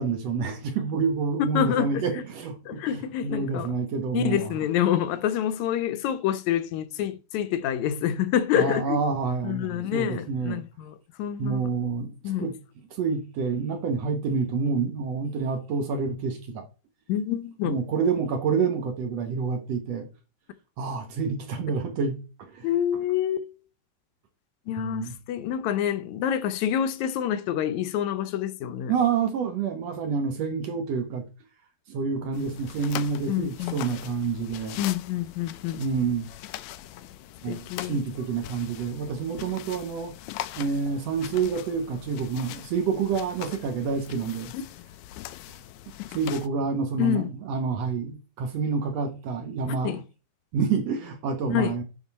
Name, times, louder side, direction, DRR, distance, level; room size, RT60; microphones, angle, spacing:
voice 1, 0.0-4.7 8.6-10.6 11.4-12.1 12.4-12.5 13.0-16.6 17.7-20.1 20.8-22.7 24.8-25.1 28.9-31.2 31.9-34.8 35.7-36.3 37.4-40.1 40.6-44.5 46.1-50.0 50.5-51.8, right 5 dB, 65° right, 1.8 m, -28 dB
voice 2, 1.4-2.2 2.7-3.7 4.1-9.0 9.4-11.6 12.2-12.5 17.1-17.8 22.6-23.5 24.7-28.9 33.3-33.7 34.8-35.8 37.5-38.0 44.5-44.6 47.0-47.3 49.8-50.0 51.5-51.8, left 10 dB, 75° left, 1.8 m, -27 dB
sound 1, 32.3-46.5, left 14 dB, 90° left, 1.6 m, -41 dB
11.0 x 4.2 x 4.2 m
omnidirectional pair, 3.9 m